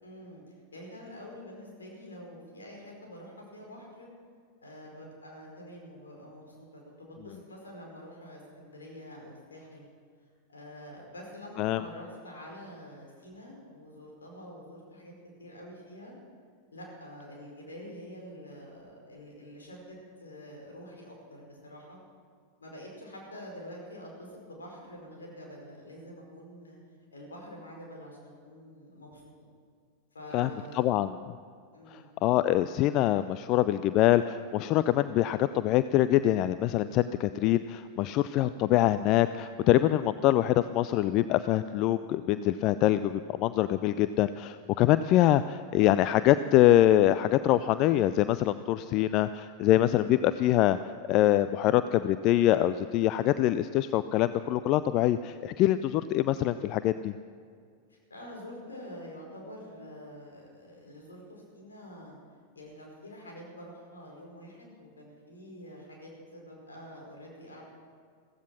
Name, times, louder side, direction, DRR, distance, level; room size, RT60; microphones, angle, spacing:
voice 1, 0.0-0.4 0.7-4.1 4.6-9.9 10.5-15.1 15.4-16.1 16.7-22.0 22.6-26.8 27.1-29.2 30.1-31.0 31.7-32.2 57.9-62.2 62.5-67.7, equal, 75° left, -1 dB, 5.0 m, -46 dB
voice 2, 30.7-31.1 31.9-50.8 51.1-57.1, left 13 dB, 40° left, 13 dB, 0.4 m, -24 dB
15.5 x 15.5 x 6.0 m, 2.1 s
figure-of-eight pair, 90°, 0 cm